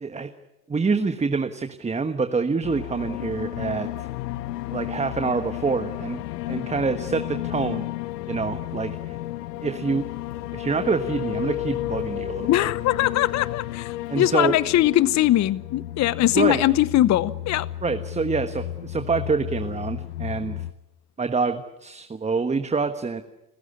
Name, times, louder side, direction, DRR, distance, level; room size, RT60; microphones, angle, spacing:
voice 1, 0.7-4.1 4.7-6.2 6.5-7.9 8.3-9.2 9.6-10.0 10.5-12.7 14.1-14.5 16.3-16.6 17.8-20.6 21.2-23.2, right 4 dB, 15° right, 1.3 m, -26 dB
sound 1, 2.6-20.7, left 15 dB, 75° left, 1.2 m, -33 dB
voice 2, 12.5-17.7, left 14 dB, 35° left, 0.9 m, -21 dB
29.0 x 15.5 x 9.8 m
hypercardioid pair, 85°, 48 cm